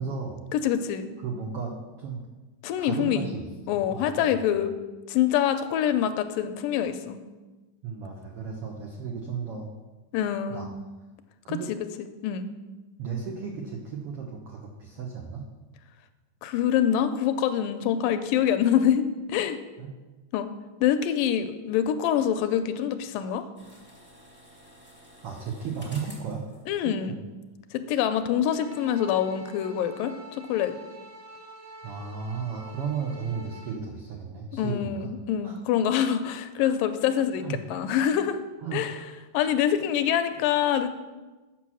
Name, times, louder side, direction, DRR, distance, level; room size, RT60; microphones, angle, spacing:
voice 1, 0.0-0.4 1.2-2.2 2.8-4.4 7.8-9.7 10.5-10.7 11.4-11.7 13.0-15.5 19.8-19.9 25.2-26.4 26.8-27.2 31.8-35.1 35.4-35.6 36.6-36.7 37.4-37.6 38.6-39.1, right 6 dB, 80° right, 0 dB, 1.3 m, -34 dB
voice 2, 0.5-1.1 2.6-3.3 3.7-4.8 5.1-7.2 10.1-10.7 11.5-11.8 12.2-12.5 16.4-19.6 20.3-20.5 20.8-23.4 26.7-27.2 27.7-30.1 30.5-30.7 34.5-38.4 38.7-38.9 39.3-40.9, left 9 dB, 85° left, 10 dB, 2.2 m, -25 dB
sound 1, 23.5-27.6 27.9-28.0, equal, 5° right, 0.9 m, -51 dB
sound 2, 28.4-33.7, right 1 dB, 65° right, 4.5 m, -46 dB
8.4 x 5.9 x 6.2 m, 1.2 s
omnidirectional pair, 3.9 m